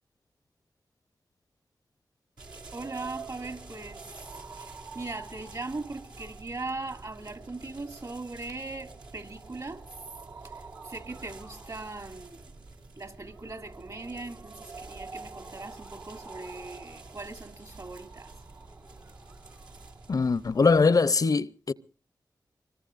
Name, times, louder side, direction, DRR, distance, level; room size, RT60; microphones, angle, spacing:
sound 1, 2.4-20.8, right 3 dB, 75° right, 2.5 m, -46 dB
voice 1, 2.7-4.0 4.5-9.8 10.4-10.5 10.8-12.4 13.0-18.3, right 3 dB, 55° right, 2.7 m, -39 dB
voice 2, 20.1-21.7, left 4 dB, 55° left, 0.7 m, -22 dB
24.5 x 22.0 x 2.5 m
cardioid pair, 45°, 7 cm